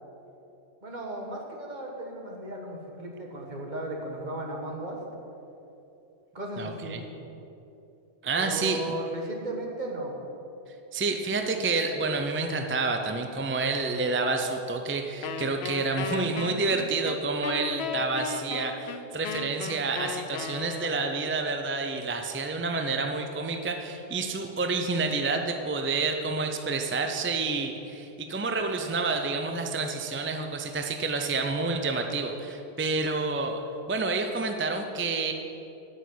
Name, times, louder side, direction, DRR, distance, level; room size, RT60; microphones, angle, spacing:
voice 1, 0.8-5.0 6.3-7.0 8.3-10.1, right 1 dB, 45° right, 0 dB, 1.6 m, -35 dB
voice 2, 6.6-7.0 8.2-8.8 10.9-33.6 33.9-35.3, right 3 dB, 20° right, 4 dB, 0.4 m, -29 dB
Wind instrument woodwind instrument, 15.2-21.2, left 6 dB, 75° left, 0.8 m, -36 dB
8.9 x 6.3 x 8.4 m, 2.9 s
omnidirectional pair, 1.1 m